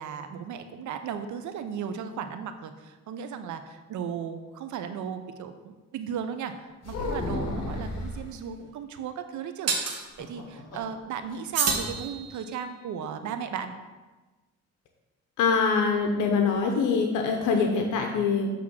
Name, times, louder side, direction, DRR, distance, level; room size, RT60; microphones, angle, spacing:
voice 1, 0.0-13.7, right 7 dB, 75° right, 9 dB, 0.7 m, -36 dB
sound 1, 6.8-8.3 10.0-11.0 11.3-11.4 11.7-12.0, left 2 dB, 55° left, 1.8 m, -33 dB
sound 2, 7.7-7.8 9.7-10.0 11.5-12.6, right 4 dB, 55° right, 1.4 m, -28 dB
voice 2, 15.4-18.5, left 5 dB, 85° left, 3 dB, 0.9 m, -24 dB
7.7 x 3.6 x 6.2 m, 1.2 s
cardioid pair, 90°, 30 cm